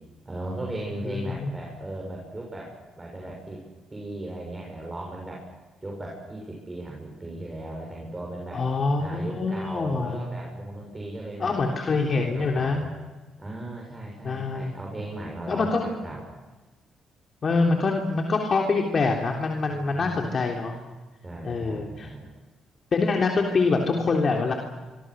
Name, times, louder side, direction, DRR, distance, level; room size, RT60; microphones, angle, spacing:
voice 1, 0.2-2.7 3.0-3.6 3.9-5.5 5.8-8.7 9.0-11.6 12.1-12.9 13.4-16.2 19.7-20.1 21.2-22.3, right 1 dB, 20° right, -1 dB, 7.5 m, -37 dB
voice 2, 1.1-1.5 8.5-10.2 11.4-12.8 14.2-14.7 15.5-15.8 17.4-20.8 21.5-22.1 22.9-24.5, left 3 dB, 45° left, 1 dB, 3.5 m, -25 dB
25.5 x 25.0 x 6.5 m, 1.3 s
cardioid pair, 90°, 0 cm